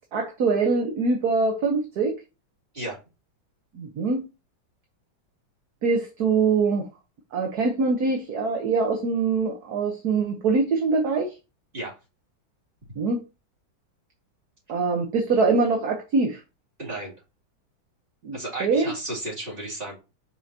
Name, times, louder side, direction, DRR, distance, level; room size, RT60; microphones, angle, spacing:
voice 1, 0.1-2.1 3.7-4.2 5.8-6.9 7.3-11.3 13.0-13.2 14.7-16.4 18.2-18.9, right 4 dB, 55° right, 1.5 m, -23 dB
voice 2, 16.8-17.1 18.3-20.0, right 2 dB, 25° right, 3.1 m, -33 dB
7.7 x 5.6 x 2.9 m
omnidirectional pair, 2.2 m